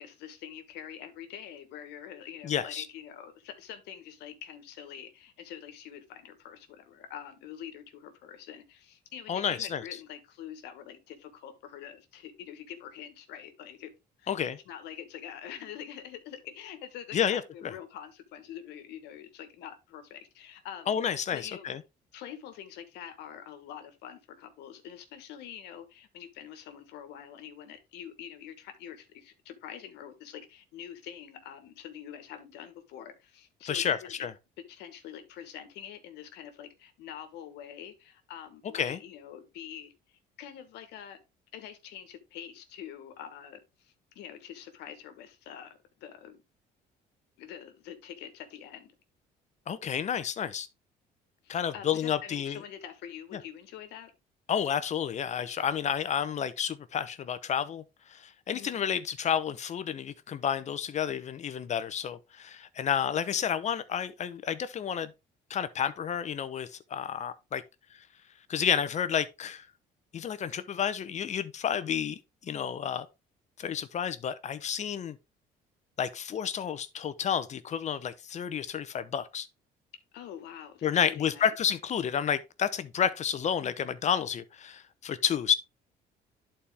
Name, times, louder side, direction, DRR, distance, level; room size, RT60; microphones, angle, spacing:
voice 1, 0.0-13.9 14.2-14.4 14.6-21.0 21.3-21.7 22.1-34.1 34.6-41.2 41.5-46.4 47.4-48.9 51.4-54.1 58.5-58.8 80.1-81.7, left 9 dB, 85° left, 1.4 m, -45 dB
voice 2, 2.4-2.9 9.3-9.8 14.3-14.6 17.1-17.7 20.9-21.8 33.7-34.3 38.7-39.0 49.7-50.7 51.5-52.6 54.5-57.8 58.1-65.1 65.5-67.6 68.5-69.6 70.1-72.2 72.5-73.1 73.6-75.2 76.0-79.5 80.8-85.5, left 8 dB, 45° left, 0.8 m, -30 dB
11.0 x 4.3 x 3.4 m
cardioid pair, 110°, 17 cm